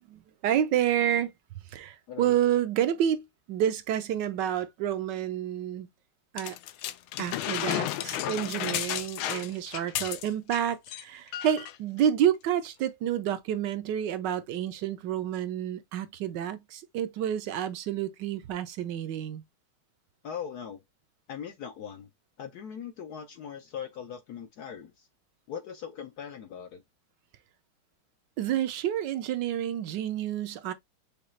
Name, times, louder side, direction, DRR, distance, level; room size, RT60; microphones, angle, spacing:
voice 1, 0.1-1.3 1.7-5.9 6.3-6.6 7.2-19.4 28.4-30.7, right 10 dB, 70° right, 1.1 m, -29 dB
sound 1, 6.4-10.6 10.9-11.0 11.3-11.8 12.5-12.6, left 13 dB, 85° left, 1.5 m, -33 dB
voice 2, 20.2-20.8 21.3-22.1 22.4-25.1 25.5-26.8, left 8 dB, 70° left, 0.9 m, -40 dB
6.6 x 2.3 x 3.1 m
omnidirectional pair, 2.3 m